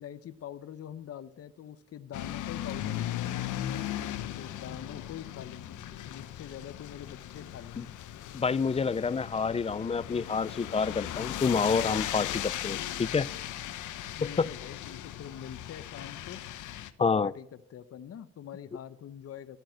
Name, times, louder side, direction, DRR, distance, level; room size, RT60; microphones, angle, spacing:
voice 1, 0.0-3.4 4.4-5.8 6.0-7.8 12.1-12.4 14.2-16.4 17.0-19.6, left 9 dB, 50° left, 0.8 m, -44 dB
sound 1, 2.1-16.9, left 12 dB, 80° left, 0.9 m, -37 dB
voice 2, 8.3-13.3 14.4-14.5 17.0-17.3, left 5 dB, 20° left, 0.4 m, -28 dB
13.0 x 9.0 x 6.5 m
cardioid pair, 90°, 30 cm